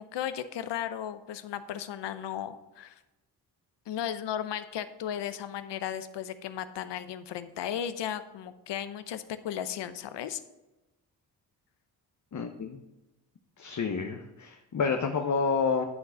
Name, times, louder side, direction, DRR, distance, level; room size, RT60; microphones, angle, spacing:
voice 1, 0.0-2.9 3.9-10.4, left 10 dB, 75° left, 11 dB, 0.8 m, -35 dB
voice 2, 12.3-12.8 13.6-15.8, left 5 dB, 40° left, 4 dB, 0.9 m, -29 dB
11.0 x 4.0 x 5.8 m, 1.0 s
supercardioid pair, 60°, 43 cm